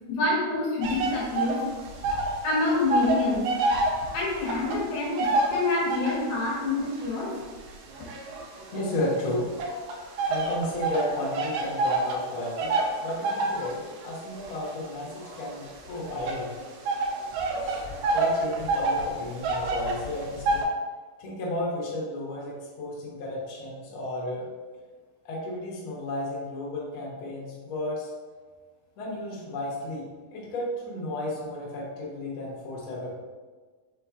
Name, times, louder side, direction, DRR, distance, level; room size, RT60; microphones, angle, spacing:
voice 1, 0.1-1.6 2.4-3.5 4.1-7.4, left 2 dB, 65° left, -5 dB, 2.3 m, -27 dB
sound 1, 0.8-2.4 2.6-6.3 6.9-9.0 9.6-20.6, right 2 dB, 85° right, 2.4 m, -28 dB
voice 2, 8.7-9.5 10.3-12.8 13.0-16.5 17.6-20.7 21.2-24.5 25.2-28.1 29.0-33.2, left 1 dB, 90° left, -5 dB, 1.1 m, -33 dB
5.8 x 3.8 x 2.4 m, 1.4 s
omnidirectional pair, 3.9 m